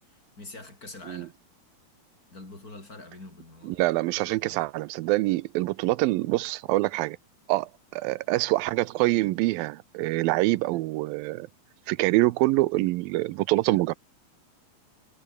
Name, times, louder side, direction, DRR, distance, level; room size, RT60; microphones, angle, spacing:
voice 1, 0.4-1.3 2.3-3.8 4.2-4.7, left 2 dB, 25° left, 6.0 m, -45 dB
voice 2, 3.6-7.2 7.5-11.5 11.9-13.9, right 19 dB, 90° right, 2.4 m, -25 dB
omnidirectional pair, 4.1 m